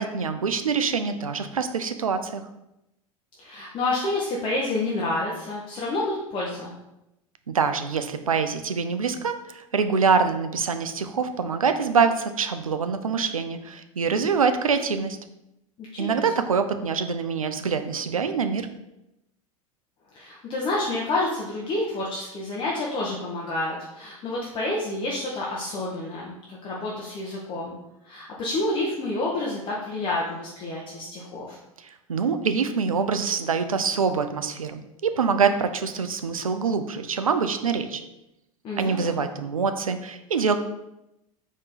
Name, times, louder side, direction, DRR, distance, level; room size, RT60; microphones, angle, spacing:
voice 1, 0.0-2.4 7.5-15.2 16.0-18.7 31.8-38.0 38.8-40.6, right 5 dB, 80° right, 9 dB, 0.4 m, -25 dB
voice 2, 3.4-6.7 15.9-16.2 20.1-27.7 28.0-31.6 38.6-39.2, left 2 dB, 30° left, -4 dB, 0.8 m, -29 dB
4.3 x 3.0 x 3.9 m, 0.88 s
figure-of-eight pair, 85°, 18 cm